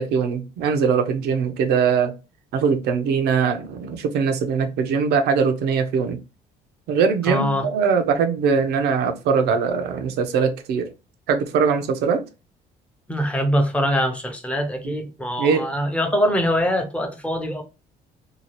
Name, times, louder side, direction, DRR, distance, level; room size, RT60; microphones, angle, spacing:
voice 1, 0.0-2.1 2.5-6.2 6.9-10.9 11.3-12.2 14.8-14.9 15.4-15.7, right 6 dB, 80° right, 0.6 m, -21 dB
voice 2, 7.3-7.6 13.1-17.6, equal, 5° left, 0.6 m, -23 dB
2.7 x 2.3 x 3.0 m
cardioid pair, 110°, 17 cm